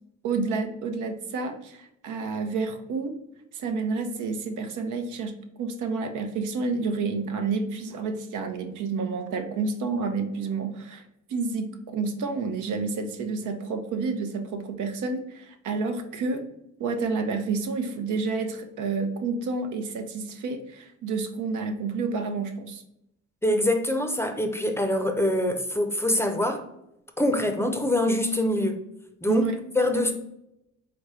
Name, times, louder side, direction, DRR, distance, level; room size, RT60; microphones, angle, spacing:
voice 1, 0.2-3.1 3.5-11.0 11.3-16.4 16.8-22.8 29.3-29.6 29.9-30.1, right 4 dB, 80° right, 6 dB, 0.7 m, -29 dB
voice 2, 23.4-26.6 27.2-28.8 29.2-29.4 29.7-30.1, left 1 dB, 10° left, 5 dB, 0.5 m, -24 dB
3.9 x 3.4 x 3.1 m, 0.82 s
cardioid pair, 90°, 30 cm